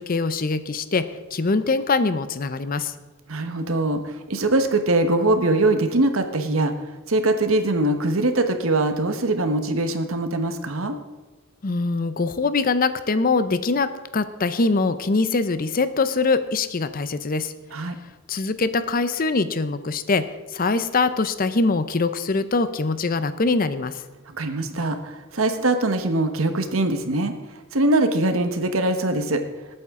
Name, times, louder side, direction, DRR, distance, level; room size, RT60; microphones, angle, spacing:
voice 1, 0.0-2.9 11.6-17.5 18.3-20.3 20.5-24.0, left 3 dB, 45° left, 12 dB, 0.6 m, -23 dB
voice 2, 3.3-6.7 7.1-11.0 17.7-18.0 24.3-27.3 27.7-29.4, right 2 dB, 85° right, 7 dB, 1.3 m, -22 dB
20.0 x 8.7 x 3.7 m, 1.1 s
head